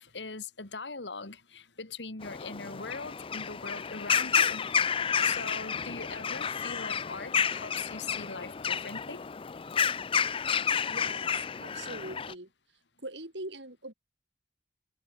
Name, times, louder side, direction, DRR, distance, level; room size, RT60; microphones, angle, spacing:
voice 1, 0.0-4.7 5.2-9.3, left 4 dB, 85° left, 2.6 m, -41 dB
sound 1, 2.2-12.3, left 7 dB, 30° left, 0.5 m, -30 dB
voice 2, 10.9-12.5 13.0-13.9, right 2 dB, 85° right, 7.5 m, -42 dB
head